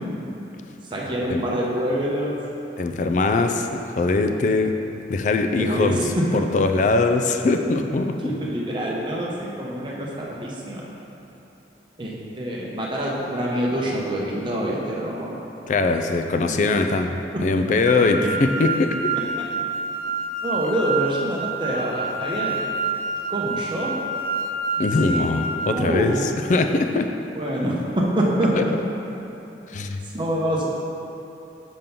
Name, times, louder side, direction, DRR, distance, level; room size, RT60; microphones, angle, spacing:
voice 1, 0.9-2.3 5.6-6.2 6.5-6.6 8.2-10.8 12.0-15.4 16.5-16.7 17.3-17.4 18.2-18.3 20.4-22.6 23.3-23.9 25.0-25.2 25.7-26.2 27.3-28.5 30.1-30.7, right 1 dB, 25° right, -4 dB, 0.8 m, -26 dB
voice 2, 2.8-4.7 5.1-6.0 6.3-8.1 15.7-18.9 24.8-27.1 28.5-28.6 29.7-30.0, left 3 dB, 45° left, 6 dB, 0.3 m, -21 dB
sound 1, 17.9-25.7, right 3 dB, 50° right, 0.3 m, -28 dB
5.2 x 3.7 x 5.8 m, 3.0 s
head